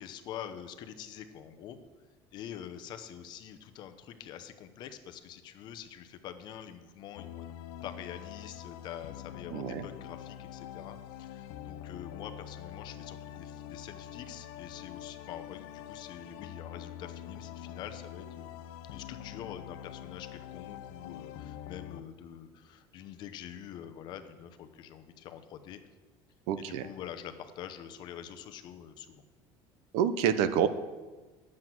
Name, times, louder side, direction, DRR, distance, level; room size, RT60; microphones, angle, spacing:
voice 1, 0.0-1.8 2.3-7.5 7.8-18.5 18.9-25.8 26.7-29.2, left 9 dB, 45° left, 8 dB, 0.8 m, -45 dB
sound 1, 7.1-22.0, left 11 dB, 75° left, 0.5 m, -45 dB
voice 2, 9.5-9.8 26.5-26.9 29.9-30.7, right 8 dB, 70° right, 12 dB, 0.7 m, -27 dB
9.9 x 7.5 x 6.1 m, 1.3 s
cardioid pair, 170°, 11 cm